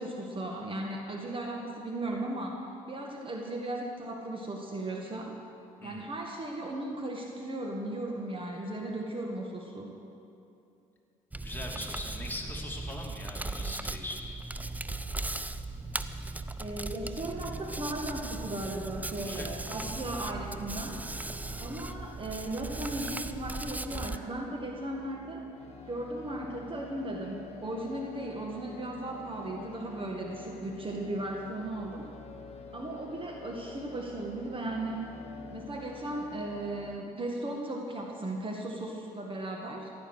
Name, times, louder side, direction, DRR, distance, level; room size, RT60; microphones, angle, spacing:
voice 1, 0.0-5.4 5.8-9.9 16.6-21.0 21.6-25.5 25.9-32.1 32.7-35.1 35.5-39.9, right 1 dB, 30° right, 1 dB, 1.9 m, -36 dB
Hands, 11.3-24.2, right 2 dB, 10° right, 0.6 m, -38 dB
voice 2, 11.4-14.4 19.2-20.0, left 1 dB, 10° left, -1 dB, 2.8 m, -41 dB
sound 1, 17.3-37.0, left 4 dB, 35° left, 2.0 m, -49 dB
16.0 x 9.5 x 6.4 m, 2.6 s
hypercardioid pair, 55°, 18 cm